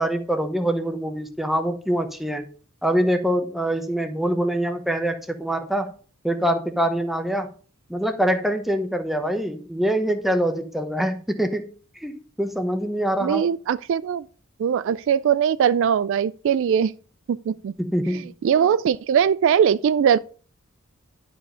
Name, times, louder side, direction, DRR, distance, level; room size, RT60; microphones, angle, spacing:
voice 1, 0.0-2.4 2.8-5.9 6.2-7.5 7.9-11.7 12.0-13.5 17.8-18.3, right 1 dB, ahead, 0.9 m, -24 dB
voice 2, 13.2-14.3 14.6-16.9 17.3-17.7 18.1-20.2, right 8 dB, 60° right, 0.3 m, -21 dB
11.0 x 4.9 x 5.0 m
head